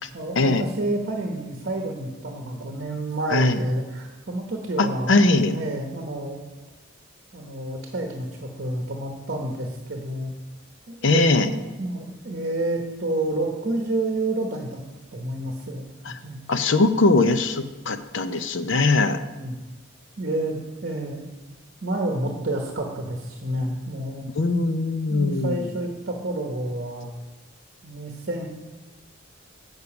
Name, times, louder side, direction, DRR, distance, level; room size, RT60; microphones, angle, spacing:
voice 1, 0.1-6.4 7.3-10.3 10.9-14.8 15.1-16.4 18.6-19.1 19.4-19.6 20.2-21.3 21.8-24.3 25.1-27.1 27.8-28.5, right 1 dB, 50° right, 2 dB, 1.0 m, -29 dB
voice 2, 4.8-5.6 11.0-11.5 16.1-16.2 16.5-19.2 24.4-25.6, left 3 dB, 60° left, 10 dB, 0.6 m, -21 dB
8.1 x 6.9 x 5.9 m, 1.1 s
head